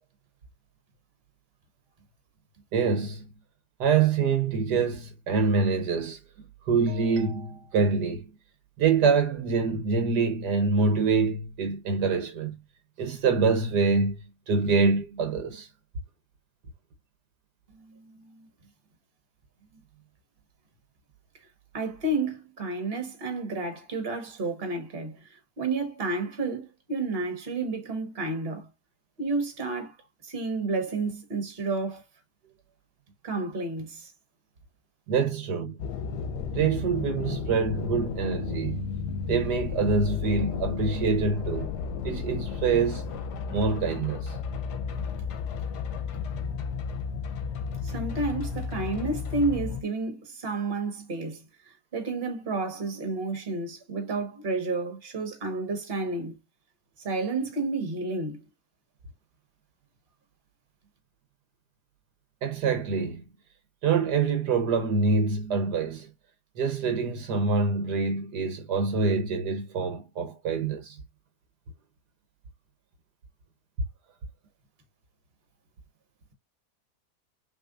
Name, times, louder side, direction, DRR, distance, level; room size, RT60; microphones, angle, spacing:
voice 1, 2.7-3.2 3.8-6.2 6.7-8.2 8.8-12.5 13.0-14.2 14.5-15.7 35.1-35.7 36.5-38.9 39.3-41.7 42.0-43.0 43.5-44.3 62.4-63.2 63.8-66.1 66.6-71.0, right 4 dB, 75° right, 1.6 m, -25 dB
voice 2, 17.7-18.5 21.7-28.7 29.2-29.9 30.2-32.0 33.2-34.1 47.8-51.4 51.9-56.3 57.0-58.4, right 3 dB, 35° right, 1.6 m, -31 dB
sound 1, 35.8-49.8, left 6 dB, 80° left, 1.3 m, -33 dB
6.1 x 3.2 x 2.4 m
omnidirectional pair, 1.8 m